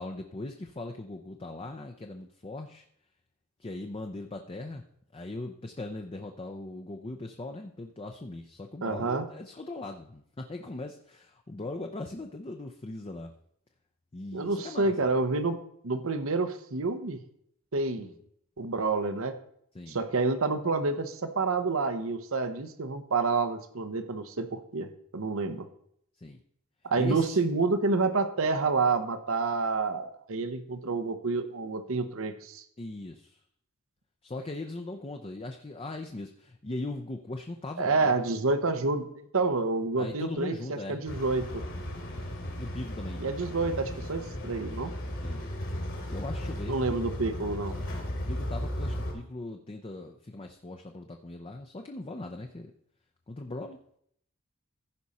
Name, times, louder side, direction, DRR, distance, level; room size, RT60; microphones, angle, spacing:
voice 1, 0.0-2.8 3.6-4.8 5.1-13.3 14.1-14.9 18.0-18.1 19.7-20.0 26.2-26.4 27.0-27.4 32.8-33.4 34.2-38.2 40.0-41.0 42.6-43.2 45.2-45.4 46.1-46.8 48.3-52.7 53.3-53.8, left 2 dB, 25° left, 4 dB, 0.6 m, -39 dB
voice 2, 8.8-9.2 14.3-15.6 15.8-17.2 17.7-18.1 18.6-19.3 19.9-25.7 26.8-32.6 37.8-39.1 39.3-41.6 43.2-44.9 46.7-47.7, right 3 dB, 65° right, 10 dB, 0.9 m, -28 dB
sound 1, 41.1-49.1, equal, 65° left, 2.7 m, -35 dB
15.0 x 5.2 x 4.2 m, 0.69 s
head